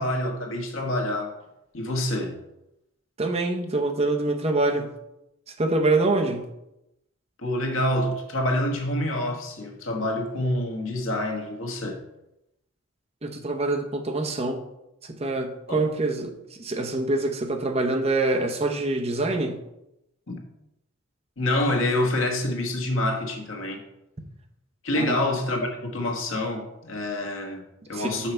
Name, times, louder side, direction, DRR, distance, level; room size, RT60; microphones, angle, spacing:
voice 1, 0.0-1.3 1.7-2.4 7.4-12.0 15.7-15.8 20.3-20.4 21.4-23.8 24.8-28.3, left 1 dB, 80° left, 1.3 m, -27 dB
voice 2, 3.2-4.9 5.5-6.5 13.2-14.6 15.0-19.6 25.0-25.2 27.9-28.2, right 2 dB, 30° right, 0.8 m, -25 dB
5.7 x 5.5 x 4.5 m
head